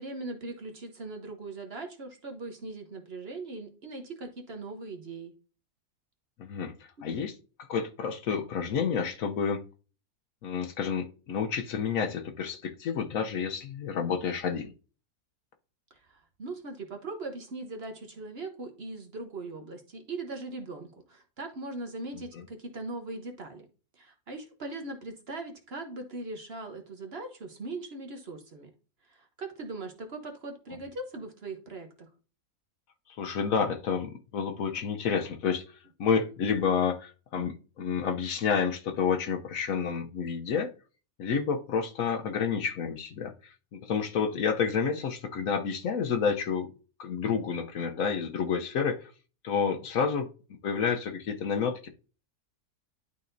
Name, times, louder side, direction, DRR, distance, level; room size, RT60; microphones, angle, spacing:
voice 1, 0.0-5.3 15.9-23.6 24.0-28.7 29.1-32.1, right 2 dB, 45° right, 1.1 m, -40 dB
voice 2, 6.4-7.4 7.7-9.6 10.4-14.7 33.2-40.7 41.2-46.7 47.0-49.1 49.4-50.3 50.6-51.9, left 6 dB, 65° left, 1.1 m, -29 dB
11.5 x 4.1 x 2.6 m
omnidirectional pair, 1.6 m